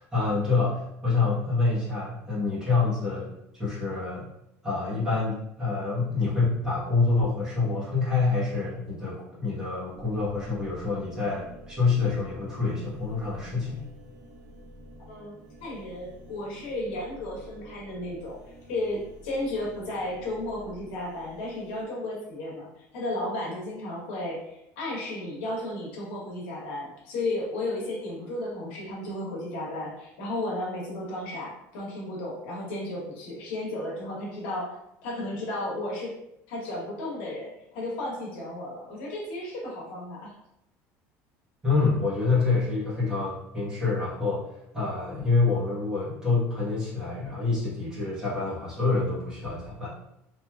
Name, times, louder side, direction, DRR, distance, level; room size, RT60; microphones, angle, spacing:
voice 1, 0.0-4.3 4.6-13.8 41.6-44.4 44.7-49.9, left 4 dB, 10° right, -10 dB, 1.0 m, -27 dB
sound 1, 9.9-21.8, equal, 65° right, 0.9 m, -49 dB
voice 2, 15.6-34.8 35.0-36.2 36.5-40.3, left 1 dB, 90° left, -3 dB, 1.0 m, -34 dB
2.9 x 2.4 x 2.2 m, 0.83 s
cardioid pair, 180°, 6 cm